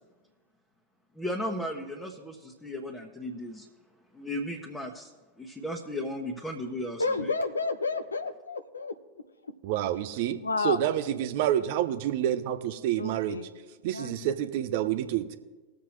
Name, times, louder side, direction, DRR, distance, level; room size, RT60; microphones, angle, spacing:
voice 1, 1.1-3.7 4.1-5.1 5.4-7.3, left 1 dB, 10° left, -1 dB, 1.3 m, -35 dB
voice 2, 7.0-9.0 10.4-10.8 13.0-13.5 13.9-14.2, left 3 dB, 80° left, 9 dB, 0.5 m, -30 dB
voice 3, 9.6-13.4 13.8-15.4, right 11 dB, 55° right, 10 dB, 0.7 m, -28 dB
20.0 x 7.2 x 3.2 m, 1.3 s
figure-of-eight pair, 90°, 0 cm